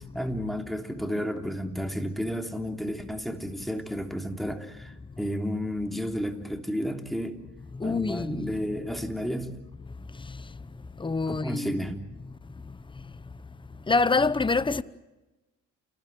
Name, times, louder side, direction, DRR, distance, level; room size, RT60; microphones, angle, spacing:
voice 1, 0.1-7.4 7.8-9.5 11.3-11.9, equal, ahead, 3.3 m, -32 dB
voice 2, 7.8-8.5 11.0-11.9 13.9-14.8, left 3 dB, 15° left, 1.0 m, -26 dB
29.5 x 19.5 x 9.2 m
cardioid pair, 90°, 30 cm